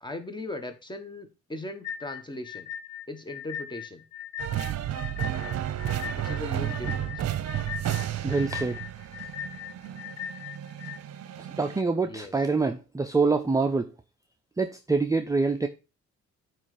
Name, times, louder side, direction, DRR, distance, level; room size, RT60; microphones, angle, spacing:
voice 1, 0.0-2.7 3.1-4.0 6.1-7.3 12.0-12.4, left 1 dB, 15° left, 7 dB, 1.3 m, -38 dB
sound 1, 1.8-11.0, left 9 dB, 60° left, 0.7 m, -39 dB
sound 2, 4.4-11.8, right 11 dB, 60° right, 0.8 m, -32 dB
voice 2, 8.2-8.8 11.6-13.9 14.6-15.7, right 4 dB, 10° right, 7 dB, 0.5 m, -25 dB
8.6 x 3.2 x 5.0 m, 0.29 s
cardioid pair, 90°, 30 cm